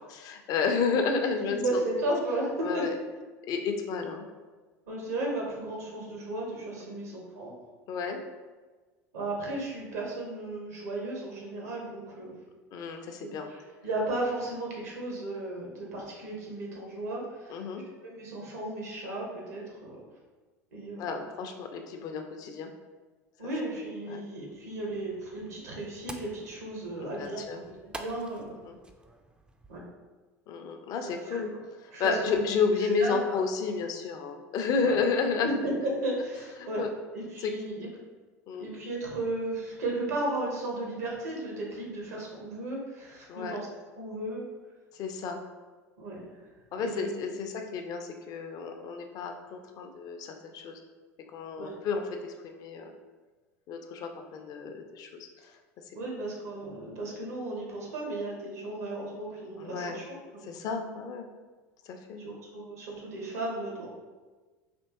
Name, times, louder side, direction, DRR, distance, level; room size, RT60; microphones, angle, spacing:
voice 1, 0.1-1.6 2.6-2.9 3.5-4.3 6.8-7.0 7.9-8.2 12.7-13.5 17.5-17.8 21.0-22.7 24.1-24.2 27.0-27.6 28.6-28.8 30.5-31.5 31.8-35.5 36.6-36.9 37.4-37.5 38.5-38.7 43.3-43.6 44.9-45.4 46.7-50.8 51.3-52.9 53.7-55.6 59.6-60.0 60.4-61.3 61.9-62.2, left 5 dB, 50° left, 4 dB, 0.5 m, -31 dB
voice 2, 1.4-2.8 4.9-7.5 9.1-12.4 13.2-17.6 18.0-20.0 20.7-21.1 23.4-27.4 27.9-28.5 29.7-29.8 31.0-31.6 31.9-32.4 32.8-33.4 34.8-35.0 35.4-36.8 37.1-37.9 38.6-43.7 44.0-44.4 46.0-46.3 46.8-47.1 51.6-51.7 55.9-60.5 62.2-63.9, right 2 dB, 80° right, -2 dB, 1.2 m, -34 dB
sound 1, 24.5-29.9, right 2 dB, 10° right, 0.4 m, -49 dB
4.3 x 3.0 x 2.9 m, 1.3 s
hypercardioid pair, 80°, 8 cm